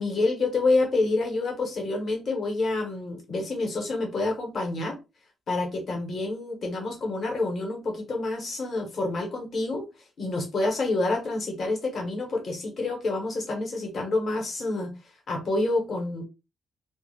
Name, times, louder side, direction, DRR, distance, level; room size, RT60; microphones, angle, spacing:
voice 1, 0.0-5.0 5.5-9.9 10.2-14.9 15.3-16.2, left 2 dB, 40° left, 0.9 m, -28 dB
2.3 x 2.3 x 3.1 m
cardioid pair, 175°, 0 cm